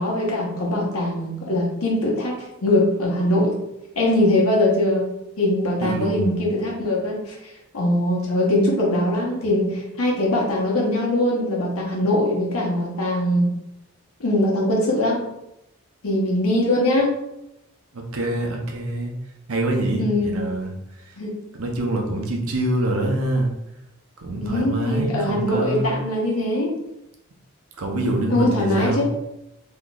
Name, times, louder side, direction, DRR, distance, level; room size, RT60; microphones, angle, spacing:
voice 1, 0.0-3.6 4.0-5.1 5.4-7.4 7.7-13.5 14.2-15.2 16.0-17.1 20.0-20.4 21.2-21.3 24.4-26.7 28.3-29.1, left 1 dB, 80° left, -3 dB, 1.0 m, -21 dB
voice 2, 5.8-6.4 17.9-19.1 19.5-20.7 21.0-21.1 21.5-23.5 24.2-25.9 27.8-29.1, right 1 dB, 80° right, 2 dB, 0.7 m, -25 dB
3.8 x 3.0 x 2.3 m, 0.87 s
head